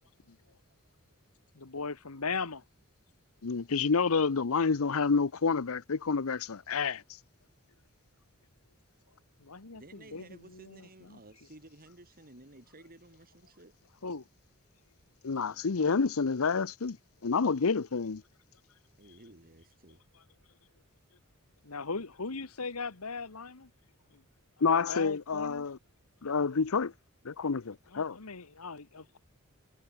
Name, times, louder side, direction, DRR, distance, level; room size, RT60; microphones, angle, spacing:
voice 1, 0.8-1.3 3.7-3.8 9.1-9.2 9.7-13.7 15.2-15.8 19.0-20.0, right 2 dB, 45° right, 5.6 m, -55 dB
voice 2, 1.5-2.6 9.4-11.2 14.0-14.2 19.1-19.2 20.1-20.2 21.6-23.7 24.1-24.2 24.6-25.6 27.9-29.2, left 4 dB, 85° left, 1.6 m, -39 dB
voice 3, 3.4-7.0 15.2-17.0 17.2-18.2 24.6-25.8 26.2-26.9 27.2-28.2, left 5 dB, 70° left, 0.7 m, -28 dB
head